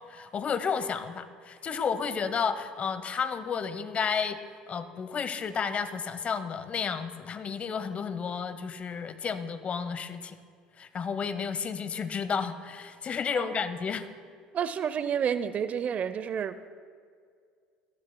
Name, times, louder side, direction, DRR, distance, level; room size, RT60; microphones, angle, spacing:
voice 1, 0.1-4.4 4.7-10.4 10.8-14.1, left 6 dB, 40° left, 13 dB, 0.9 m, -32 dB
voice 2, 14.5-16.7, right 8 dB, 45° right, 13 dB, 0.6 m, -30 dB
21.5 x 15.0 x 2.2 m, 2.1 s
hypercardioid pair, 70°, 4 cm